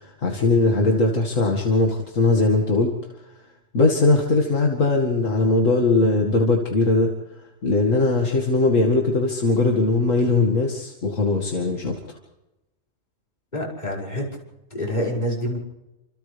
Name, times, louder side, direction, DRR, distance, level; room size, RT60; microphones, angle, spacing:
voice 1, 0.0-2.9 3.3-3.4 3.7-7.1 7.4-12.2, left 3 dB, 75° left, 1 dB, 2.5 m, -20 dB
voice 2, 13.5-14.3 14.7-15.6, equal, 35° left, -3 dB, 6.1 m, -26 dB
30.0 x 27.0 x 3.4 m, 1.0 s
omnidirectional pair, 1.4 m